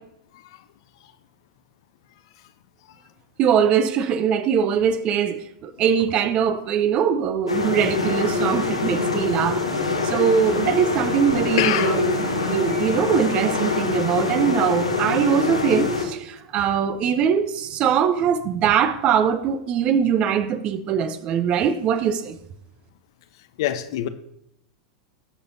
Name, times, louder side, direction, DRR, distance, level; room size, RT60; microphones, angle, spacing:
voice 1, 0.3-0.7 2.9-3.0 11.6-12.0 23.6-24.1, left 12 dB, 55° left, 0.8 m, -25 dB
voice 2, 3.4-9.6 10.0-12.1 12.4-22.4, right 8 dB, 35° right, 0.8 m, -22 dB
sound 1, 7.5-16.1, left 4 dB, 85° left, 1.4 m, -24 dB
sound 2, 10.1-15.3, equal, 90° right, 3.1 m, -43 dB
19.5 x 6.9 x 2.7 m
figure-of-eight pair, 90°, 3 cm